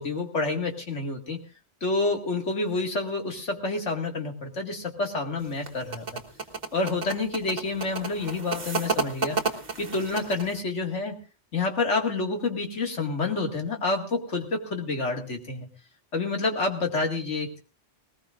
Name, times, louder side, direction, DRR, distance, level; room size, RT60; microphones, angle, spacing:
voice 1, 0.0-1.4 1.8-6.2 6.7-11.2 11.5-15.7 16.1-17.6, left 3 dB, 80° left, 3 dB, 2.4 m, -28 dB
sound 1, 5.4-10.6, right 4 dB, 40° right, 1.6 m, -31 dB
20.0 x 19.0 x 2.5 m, 0.33 s
omnidirectional pair, 1.2 m